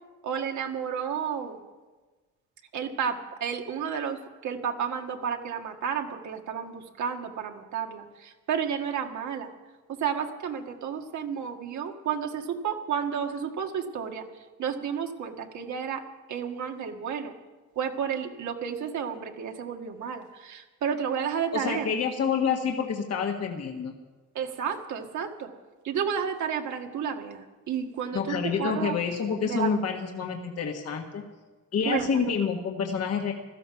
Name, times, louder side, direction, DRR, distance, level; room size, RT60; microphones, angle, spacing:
voice 1, 0.2-1.6 2.7-9.5 9.9-14.2 14.6-16.0 16.3-17.3 17.8-21.9 24.4-25.5 25.8-28.9 29.4-29.7 31.9-32.1, right 7 dB, 70° right, 4 dB, 1.8 m, -31 dB
voice 2, 21.5-23.9 28.1-31.2 31.7-33.3, left 6 dB, 55° left, 2 dB, 1.6 m, -28 dB
16.0 x 13.0 x 5.9 m, 1.3 s
cardioid pair, 90°, 30 cm